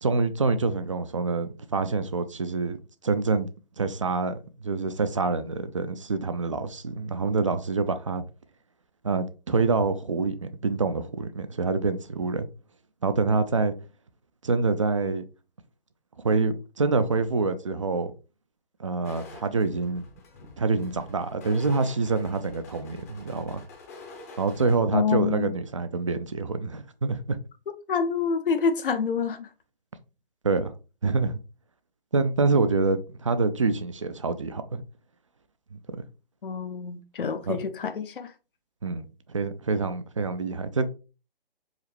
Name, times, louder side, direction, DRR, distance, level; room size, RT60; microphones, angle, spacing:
voice 1, 0.0-2.8 3.0-3.5 3.8-4.4 4.6-8.2 9.0-12.5 13.0-13.7 14.4-15.2 16.2-18.1 18.8-20.0 20.6-23.6 24.4-27.4 30.4-30.7 31.0-31.4 32.1-34.8 35.7-35.8 37.5-37.6 38.8-40.9, right 4 dB, 35° right, 0.4 m, -26 dB
sound 1, 19.0-24.8, left 3 dB, 15° left, 0.6 m, -47 dB
voice 2, 24.9-25.5 27.9-29.5 36.4-38.3, left 5 dB, 65° left, 0.7 m, -27 dB
4.8 x 3.2 x 3.2 m
figure-of-eight pair, 145°, 29 cm